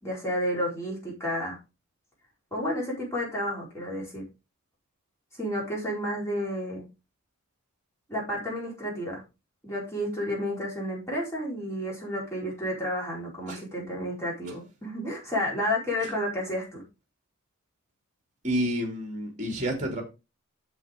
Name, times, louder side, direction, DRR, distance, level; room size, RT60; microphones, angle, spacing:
voice 1, 0.0-1.6 2.5-4.2 5.4-6.8 8.1-9.2 9.6-16.8, equal, 15° left, 4.7 m, -31 dB
voice 2, 18.4-20.0, equal, 35° right, 2.8 m, -29 dB
8.2 x 7.0 x 3.8 m
head